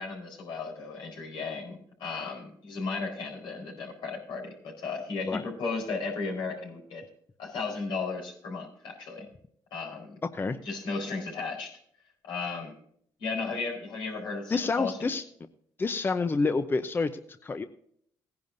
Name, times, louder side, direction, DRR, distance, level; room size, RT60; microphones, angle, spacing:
voice 1, 0.0-7.0 7.4-9.3 9.7-10.1 10.6-11.8 12.2-12.7 13.2-15.1, left 4 dB, 80° left, 0 dB, 4.5 m, -35 dB
voice 2, 14.5-15.2 15.8-17.6, left 3 dB, 25° left, 10 dB, 0.7 m, -28 dB
17.0 x 10.5 x 2.6 m, 0.65 s
cardioid pair, 85°, 8 cm